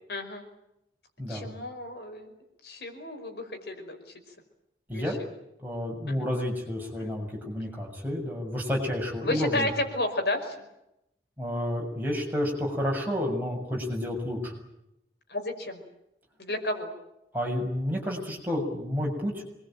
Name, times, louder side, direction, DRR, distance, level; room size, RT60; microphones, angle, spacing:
voice 1, 0.1-0.5 1.3-2.3 2.6-4.0 4.9-5.2 6.1-6.3 7.0-7.1 9.2-10.6 15.3-15.8 16.4-16.9, left 1 dB, 70° left, 5 dB, 5.3 m, -32 dB
voice 2, 5.6-9.7 11.4-14.5 17.3-19.4, left 1 dB, 10° right, -1 dB, 7.3 m, -30 dB
26.0 x 22.0 x 9.1 m, 0.84 s
head